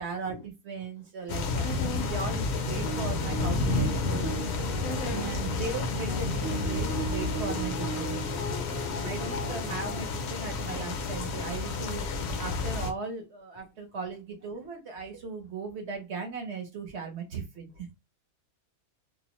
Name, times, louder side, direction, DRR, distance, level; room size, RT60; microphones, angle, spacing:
voice 1, 0.0-1.6 2.1-4.2 5.1-8.2 9.0-12.0 12.4-17.9, right 4 dB, 60° right, 0.8 m, -37 dB
sound 1, 1.3-12.9, left 3 dB, 65° left, 0.7 m, -31 dB
voice 2, 1.6-2.1 4.8-5.3, equal, 80° left, 1.1 m, -37 dB
sound 2, 2.6-10.0, right 4 dB, 20° right, 0.3 m, -38 dB
2.5 x 2.1 x 2.9 m
omnidirectional pair, 1.5 m